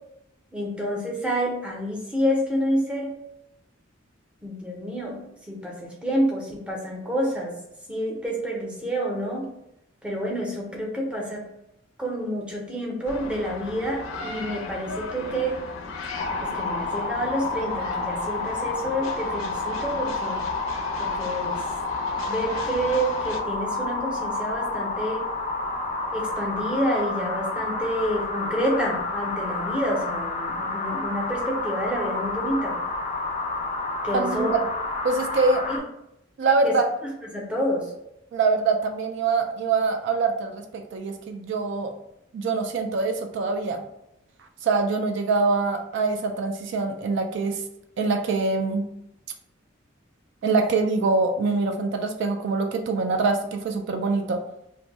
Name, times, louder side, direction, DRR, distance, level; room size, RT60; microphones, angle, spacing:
voice 1, 0.5-3.2 4.4-5.2 5.5-7.6 7.9-9.5 10.0-11.4 12.0-15.6 16.4-20.4 21.0-21.6 22.3-25.3 26.1-32.8 34.0-34.6 35.7-35.8 36.6-36.7 37.3-37.9, equal, 5° right, -2 dB, 0.6 m, -28 dB
sound 1, 13.1-23.4, left 3 dB, 85° left, 0.5 m, -37 dB
sound 2, 16.2-35.8, left 3 dB, 35° left, 0.4 m, -29 dB
voice 2, 34.1-34.6 35.0-35.6 36.4-36.8 38.3-41.9 42.3-43.8 44.6-47.6 48.0-48.9 50.4-54.4, right 4 dB, 60° right, 5 dB, 0.3 m, -24 dB
2.6 x 2.2 x 4.0 m, 0.82 s
head